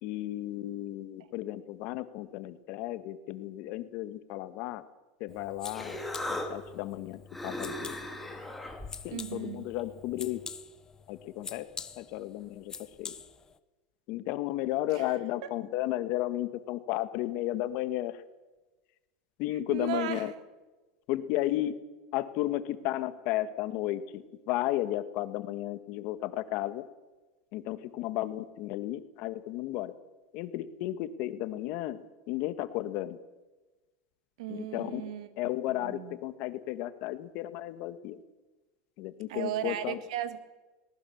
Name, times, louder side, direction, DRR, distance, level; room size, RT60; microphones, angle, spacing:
voice 1, 0.0-4.8 5.2-6.0 6.5-7.9 9.0-10.4 11.1-11.7 12.0-12.7 13.0-13.1 14.1-18.2 19.4-20.3 21.1-21.7 22.1-26.8 27.5-29.9 30.3-33.2 34.5-35.0 35.4-38.2 39.0-40.0, left 14 dB, 55° left, 12 dB, 1.5 m, -33 dB
sound 1, 5.3-13.6, left 6 dB, 20° left, 0.9 m, -47 dB
Human voice, 5.3-10.5, left 1 dB, 5° left, 2.7 m, -40 dB
voice 2, 9.1-9.6 14.9-15.0 15.4-15.5 19.7-20.3 34.4-35.3 35.8-36.1 39.3-40.4, right 11 dB, 80° right, 11 dB, 2.0 m, -35 dB
21.0 x 19.5 x 7.1 m, 1.2 s
supercardioid pair, 145°, 3 cm